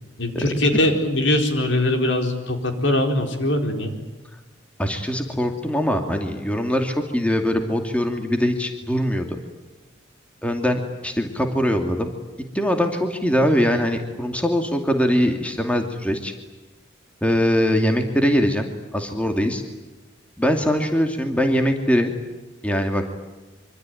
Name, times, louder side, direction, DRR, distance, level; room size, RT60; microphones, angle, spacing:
voice 1, 0.2-3.9, left 1 dB, 70° left, 5 dB, 4.5 m, -21 dB
voice 2, 4.8-9.4 10.4-12.1 12.5-16.3 17.2-19.6 20.4-22.1 22.6-23.1, equal, 5° left, 4 dB, 2.5 m, -22 dB
25.5 x 25.0 x 9.3 m, 1.1 s
head